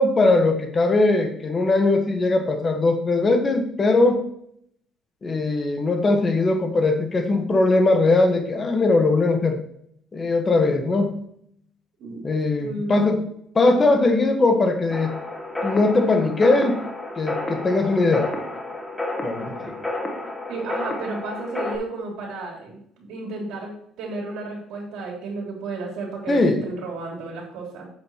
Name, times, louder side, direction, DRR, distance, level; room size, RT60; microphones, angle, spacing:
voice 1, 0.0-4.2 5.2-9.6 10.1-11.2 12.2-13.2 13.5-15.1 15.6-16.8 17.2-18.3 19.2-19.8 26.3-26.6, left 2 dB, 30° left, 5 dB, 1.3 m, -20 dB
voice 2, 12.6-13.3 20.5-27.9, right 2 dB, 75° right, 0 dB, 3.1 m, -33 dB
sound 1, 14.9-21.8, left 2 dB, 10° left, 1.3 m, -31 dB
7.9 x 7.4 x 3.0 m, 0.70 s
cardioid pair, 105°, 0 cm